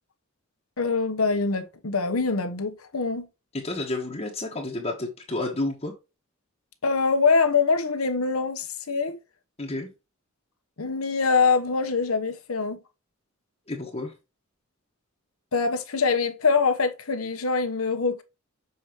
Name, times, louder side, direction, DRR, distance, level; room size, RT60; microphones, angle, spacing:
voice 1, 0.8-3.3 6.8-9.2 10.8-12.8 15.5-18.2, left 4 dB, 90° left, 1.1 m, -24 dB
voice 2, 3.5-5.9 9.6-9.9 13.7-14.1, left 2 dB, 30° left, 1.3 m, -30 dB
7.0 x 5.0 x 3.0 m
head